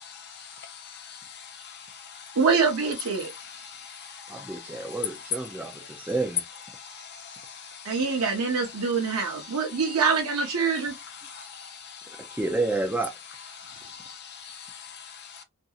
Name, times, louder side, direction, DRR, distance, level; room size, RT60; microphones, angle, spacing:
voice 1, 0.0-2.4 3.2-5.1 5.5-6.1 6.8-8.2 8.7-9.8 10.9-12.4 13.5-15.4, left 7 dB, 45° left, 0.6 m, -43 dB
voice 2, 2.4-3.3 7.8-10.9, right 5 dB, 80° right, 0.7 m, -25 dB
voice 3, 4.3-6.4 12.2-13.1, right 2 dB, 5° right, 0.4 m, -30 dB
2.8 x 2.5 x 2.3 m
head